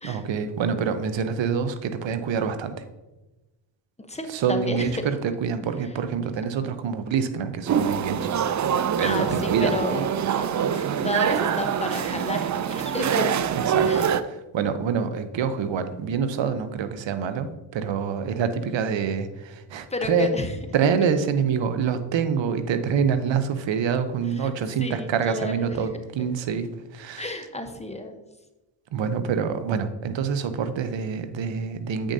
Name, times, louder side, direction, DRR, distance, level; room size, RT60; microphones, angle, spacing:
voice 1, 0.0-2.8 4.3-8.3 9.0-9.8 13.6-20.3 20.7-27.3 28.9-32.1, right 6 dB, 60° right, 10 dB, 0.9 m, -26 dB
voice 2, 4.0-4.9 9.0-13.3 13.9-14.0 19.9-20.5 24.4-24.5 24.8-25.8 27.2-28.2, left 1 dB, 15° left, 6 dB, 0.9 m, -31 dB
sound 1, 7.7-14.2, right 8 dB, 40° right, 0.4 m, -24 dB
7.9 x 6.3 x 2.7 m, 1.1 s
supercardioid pair, 60°, 49 cm